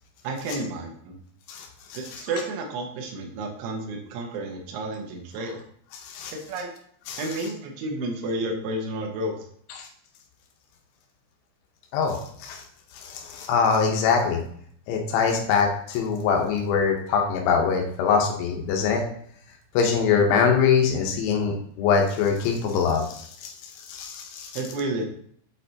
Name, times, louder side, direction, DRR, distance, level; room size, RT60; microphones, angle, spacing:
voice 1, 0.2-1.2 1.9-5.6 6.5-6.7 7.2-9.4 24.5-25.1, right 2 dB, 85° right, 1 dB, 3.3 m, -31 dB
voice 2, 1.5-2.2 6.0-6.3 7.1-7.2 9.8-9.9 11.9-12.6 12.9-14.4 14.9-19.0 19.7-24.6, left 6 dB, 90° left, 1 dB, 3.2 m, -23 dB
7.9 x 4.4 x 2.7 m, 0.63 s
omnidirectional pair, 5.3 m